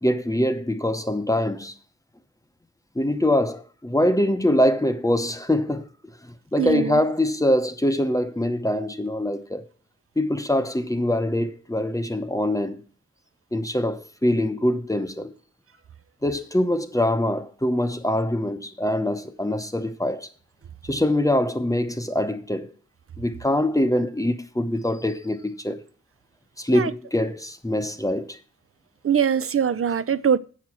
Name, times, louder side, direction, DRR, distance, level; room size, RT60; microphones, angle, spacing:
voice 1, 0.0-1.7 3.0-5.9 6.5-9.6 10.2-12.8 13.5-15.3 16.2-20.3 20.9-22.7 23.2-25.8 26.6-28.4, left 1 dB, 10° left, 0.8 m, -23 dB
voice 2, 6.6-6.9 26.7-26.9 29.0-30.4, right 7 dB, 45° right, 0.5 m, -22 dB
8.1 x 6.5 x 6.0 m
wide cardioid pair, 100°, 31 cm